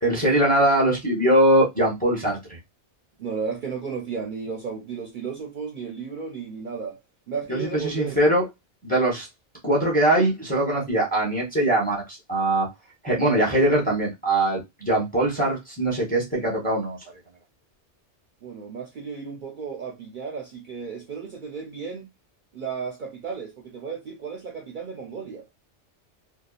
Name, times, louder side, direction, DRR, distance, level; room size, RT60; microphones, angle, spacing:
voice 1, 0.0-2.4 7.5-8.4 8.8-9.3 9.6-12.7 13.0-17.0, right 1 dB, 10° left, 0.7 m, -21 dB
voice 2, 3.2-7.0 7.3-8.2 18.4-22.1 22.5-25.4, right 5 dB, 55° right, 0.6 m, -34 dB
2.6 x 2.2 x 2.3 m
omnidirectional pair, 1.2 m